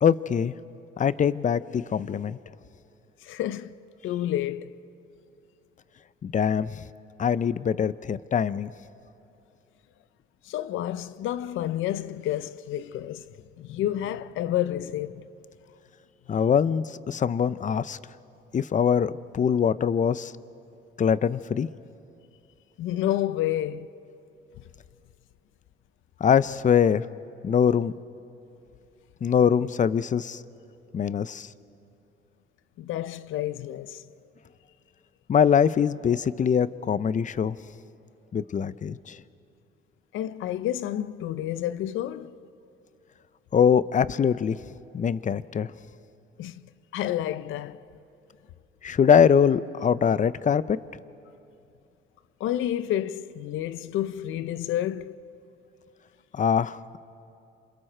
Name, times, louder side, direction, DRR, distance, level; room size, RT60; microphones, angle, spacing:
voice 1, 0.0-0.5 1.0-2.4 6.2-6.8 7.2-8.7 16.3-18.0 18.5-20.3 21.0-21.7 26.2-27.0 27.4-27.9 29.2-30.4 30.9-31.5 35.3-37.6 38.3-39.2 43.5-44.6 44.9-45.7 48.8-50.8 56.3-57.0, left 7 dB, 40° left, 0.6 m, -23 dB
voice 2, 3.2-4.8 10.4-13.3 13.6-15.3 22.8-23.9 32.8-34.0 40.1-42.4 46.4-47.8 52.4-55.2, left 12 dB, 85° left, 0.6 m, -30 dB
28.0 x 27.0 x 4.5 m
cardioid pair, 90°, 20 cm